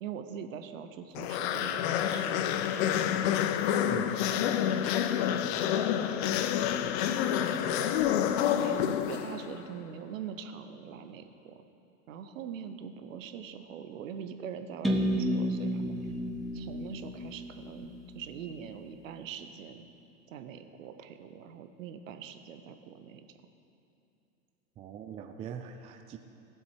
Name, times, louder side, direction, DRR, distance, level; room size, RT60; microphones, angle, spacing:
voice 1, 0.0-3.0 3.8-4.2 6.0-6.5 7.1-7.9 8.6-11.6 12.1-16.0 16.5-19.9 20.3-23.3, right 8 dB, 65° right, 8 dB, 1.0 m, -43 dB
sound 1, 1.1-9.6, left 10 dB, 50° left, 0.7 m, -28 dB
voice 2, 3.9-4.3 24.8-26.2, right 8 dB, 15° right, 6 dB, 0.4 m, -42 dB
sound 2, 14.8-18.7, equal, ahead, 1.0 m, -32 dB
16.5 x 7.4 x 4.7 m, 2.8 s
figure-of-eight pair, 90°, 42 cm